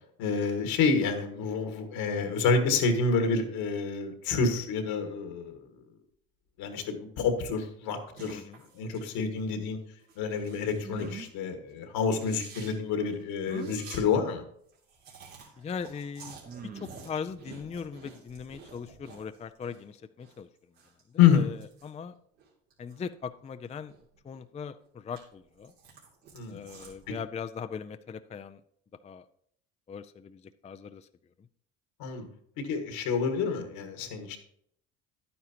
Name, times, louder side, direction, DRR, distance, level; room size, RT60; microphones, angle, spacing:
voice 1, 0.2-5.6 6.6-8.4 8.8-9.8 10.2-14.4 21.2-21.5 26.3-26.6 32.0-32.3 32.6-34.4, left 5 dB, 70° left, 6 dB, 1.8 m, -28 dB
sound 1, 8.1-9.1 9.4-9.6 10.0-11.4 11.7-11.8 12.1-14.0 14.4-14.5 14.6-19.8 20.1-23.0 23.4-24.4 24.8-27.1, right 5 dB, 85° right, 2.9 m, -51 dB
sound 2, 10.8-11.3 13.5-13.8 15.2-15.3 16.5-17.1, right 4 dB, 25° right, 1.0 m, -42 dB
voice 2, 15.6-16.4 16.7-20.5 21.3-21.6 21.8-22.1 22.8-23.9 24.2-25.7 26.5-28.6 29.0-29.2 29.9-31.1, left 6 dB, 20° left, 10 dB, 0.4 m, -39 dB
11.0 x 9.5 x 2.9 m, 0.67 s
hypercardioid pair, 70°, 37 cm